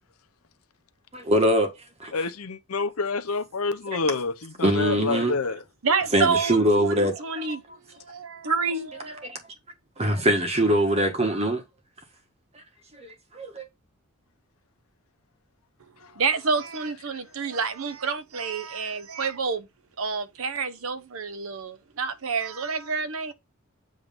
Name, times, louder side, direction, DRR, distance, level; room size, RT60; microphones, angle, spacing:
voice 1, 1.1-1.7 2.0-2.2 4.6-5.4 6.1-7.6 9.2-9.4 10.0-11.6 12.9-13.7, equal, 30° right, 1.5 m, -23 dB
voice 2, 2.1-5.6, left 4 dB, 80° left, 0.8 m, -28 dB
voice 3, 5.8-7.6 8.1-9.3 16.2-19.7 20.0-23.3, right 5 dB, 70° right, 0.8 m, -28 dB
7.6 x 3.2 x 5.3 m
head